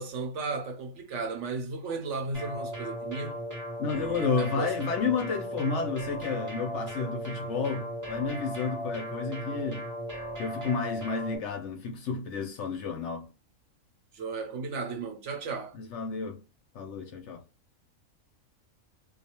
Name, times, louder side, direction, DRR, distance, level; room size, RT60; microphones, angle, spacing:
voice 1, 0.0-3.4 3.9-4.9 14.1-15.8, right 4 dB, 65° right, 0.8 m, -35 dB
sound 1, 2.3-11.4, equal, 20° right, 0.5 m, -37 dB
voice 2, 3.8-9.9 10.4-13.3 15.7-16.4 16.7-17.4, left 5 dB, 65° left, 0.8 m, -31 dB
2.5 x 2.3 x 2.8 m
omnidirectional pair, 1.5 m